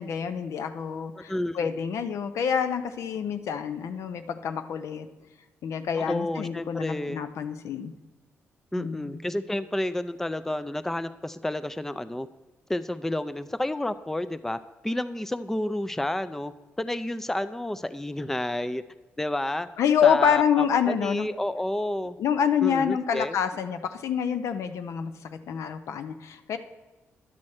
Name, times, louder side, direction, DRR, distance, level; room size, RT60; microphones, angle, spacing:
voice 1, 0.0-5.1 5.6-7.9 8.8-9.2 19.8-21.3 22.2-26.6, left 7 dB, 80° left, 9 dB, 0.6 m, -27 dB
voice 2, 1.2-1.7 6.0-7.3 8.7-12.3 12.7-16.5 16.8-18.8 19.2-19.7 20.0-22.2 22.6-23.4, left 1 dB, 5° left, 11 dB, 0.3 m, -30 dB
11.0 x 6.3 x 4.3 m, 1.1 s
cardioid pair, 80°, 5 cm